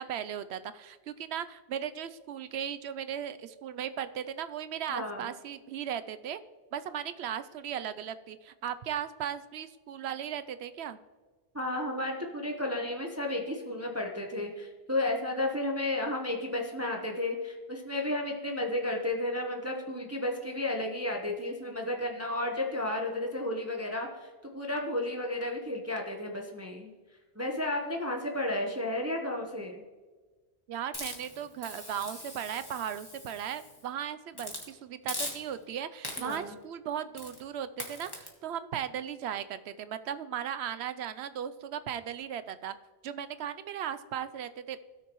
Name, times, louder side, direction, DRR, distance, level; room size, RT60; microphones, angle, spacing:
voice 1, 0.0-6.4 6.7-11.0 30.7-42.7 43.0-44.8, right 9 dB, 85° right, 12 dB, 0.9 m, -37 dB
voice 2, 4.9-5.3 11.5-26.9 27.4-29.8 36.2-36.5, left 1 dB, 15° right, 1 dB, 0.9 m, -33 dB
Hiss, 30.9-33.8 34.3-34.7 35.1-35.7 36.0-36.5 37.2-37.4 37.8-38.3, left 1 dB, 20° left, 1.6 m, -41 dB
17.0 x 6.6 x 3.1 m, 1.3 s
omnidirectional pair, 1.1 m